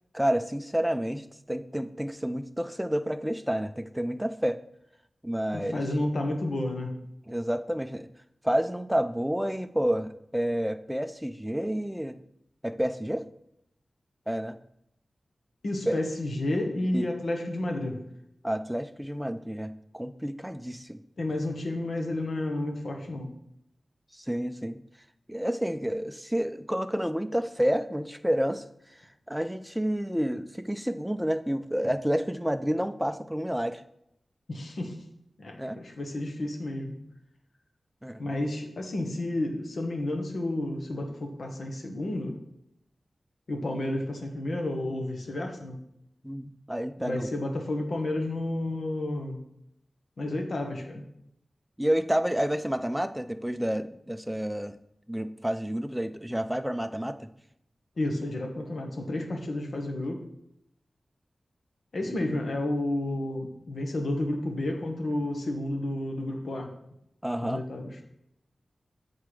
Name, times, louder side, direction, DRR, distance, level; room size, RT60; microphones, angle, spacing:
voice 1, 0.1-4.6 5.2-5.8 7.3-8.1 8.4-12.1 12.6-13.3 14.3-14.6 15.9-16.0 16.9-17.1 18.4-21.0 24.1-24.8 25.3-28.7 29.3-33.8 35.6-35.8 38.0-38.2 46.2-47.3 51.8-54.8 55.1-57.3 62.0-62.2 67.2-67.6, equal, 5° right, 10 dB, 0.5 m, -29 dB
voice 2, 5.5-7.0 15.6-18.0 21.2-23.4 34.5-35.0 35.4-37.0 38.2-42.4 43.5-45.8 47.0-49.4 50.2-51.0 58.0-60.3 61.9-66.7 67.4-68.0, left 1 dB, 70° left, 3 dB, 1.4 m, -31 dB
7.8 x 4.7 x 4.9 m, 0.77 s
wide cardioid pair, 80°, 0 cm